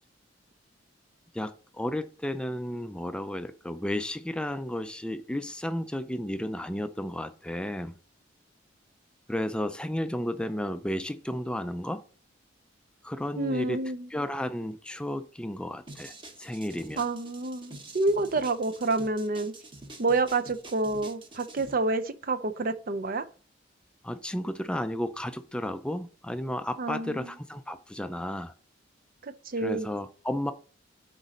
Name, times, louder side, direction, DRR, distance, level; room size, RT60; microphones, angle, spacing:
voice 1, 1.3-8.0 9.3-12.0 13.0-13.8 14.1-17.0 24.0-28.5 29.6-30.5, left 1 dB, 5° left, 0.4 m, -33 dB
voice 2, 13.4-14.1 17.0-19.5 20.0-23.2 26.8-27.3 29.2-29.9, right 3 dB, 50° right, 0.5 m, -28 dB
sound 1, 15.9-21.7, right 2 dB, 25° right, 1.1 m, -47 dB
8.2 x 4.0 x 5.0 m
head